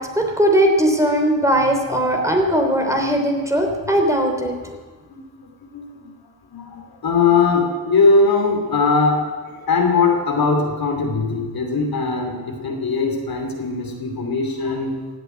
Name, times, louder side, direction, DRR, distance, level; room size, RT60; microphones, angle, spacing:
voice 1, 0.0-4.5, right 1 dB, 10° right, 2 dB, 3.2 m, -19 dB
voice 2, 5.7-6.1 6.5-9.2 9.5-14.9, left 4 dB, 70° left, 2 dB, 2.9 m, -20 dB
16.5 x 8.2 x 9.2 m, 1.4 s
cardioid pair, 70°, 37 cm